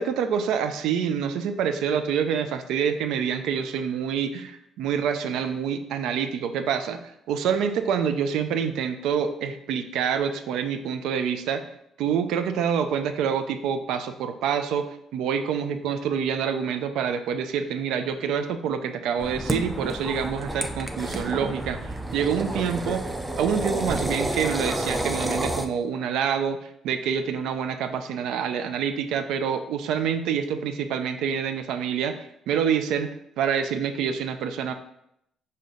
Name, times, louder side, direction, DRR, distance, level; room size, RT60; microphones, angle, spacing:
voice 1, 0.0-7.0 7.3-11.6 12.0-23.0 23.4-33.1 33.4-34.7, right 7 dB, 80° right, 9 dB, 0.3 m, -27 dB
sound 1, 19.2-25.7, right 1 dB, 15° right, 0.5 m, -30 dB
5.0 x 2.7 x 3.8 m, 0.77 s
supercardioid pair, 70°, 0 cm